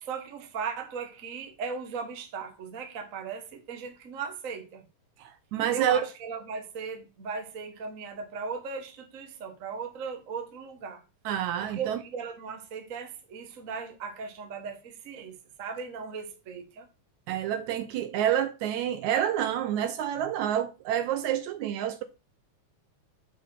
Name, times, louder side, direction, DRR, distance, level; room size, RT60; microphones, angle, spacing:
voice 1, 0.0-4.8 5.7-11.0 11.6-16.9, right 5 dB, 45° right, 1.0 m, -37 dB
voice 2, 5.2-6.0 11.3-12.0 17.3-22.0, right 10 dB, 75° right, 1.9 m, -28 dB
7.3 x 4.4 x 5.6 m
omnidirectional pair, 3.7 m